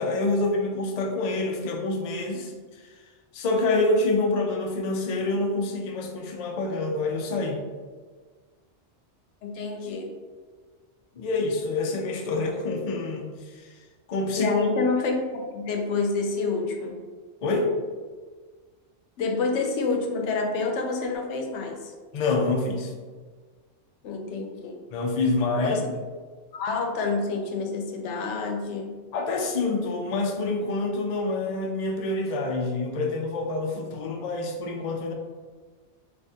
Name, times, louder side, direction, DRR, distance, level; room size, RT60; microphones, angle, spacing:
voice 1, 0.0-2.5 2.8-2.9 3.3-7.6 11.2-13.7 14.1-14.5 17.4-17.7 22.1-22.9 24.9-25.8 29.1-35.1, left 2 dB, 55° left, 1 dB, 0.4 m, -27 dB
voice 2, 9.4-10.1 14.3-17.0 19.2-21.9 24.0-24.7 25.6-25.9 26.5-28.9, left 3 dB, 85° left, 2 dB, 0.9 m, -28 dB
3.5 x 2.4 x 2.6 m, 1.5 s
omnidirectional pair, 1.2 m